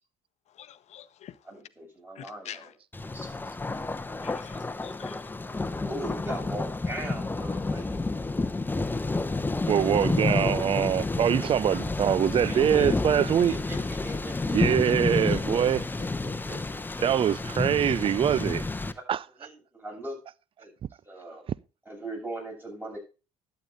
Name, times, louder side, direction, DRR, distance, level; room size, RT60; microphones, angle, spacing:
voice 1, 0.6-1.3 2.2-2.6 4.2-5.1, left 10 dB, 50° left, 0.8 m, -45 dB
voice 2, 1.4-2.7 3.1-3.3 5.8-8.1 12.4-12.9 13.3-13.8 14.0-16.8 18.0-18.1 19.4-20.2 20.6-20.7 21.1-21.4 21.9-23.0, right 1 dB, 15° right, 7.7 m, -39 dB
Thunder, 2.9-18.9, left 3 dB, 15° left, 1.0 m, -30 dB
voice 3, 9.7-13.6 14.5-15.9 17.0-18.7 19.1-19.3, right 9 dB, 40° right, 0.5 m, -24 dB
11.5 x 8.5 x 4.0 m
hypercardioid pair, 60°, 15 cm